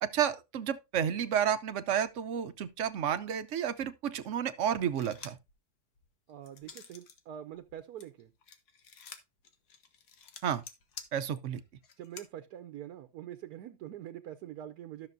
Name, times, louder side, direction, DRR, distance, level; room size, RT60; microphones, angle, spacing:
voice 1, 0.0-5.4 10.4-10.6 11.1-11.6, right 9 dB, 60° right, 0.9 m, -31 dB
sound 1, 4.8-5.5 6.0-7.2 7.5-12.3, left 6 dB, 75° left, 1.7 m, -50 dB
voice 2, 6.3-8.3 12.0-15.1, right 11 dB, 80° right, 1.2 m, -45 dB
13.0 x 6.6 x 2.6 m
omnidirectional pair, 1.7 m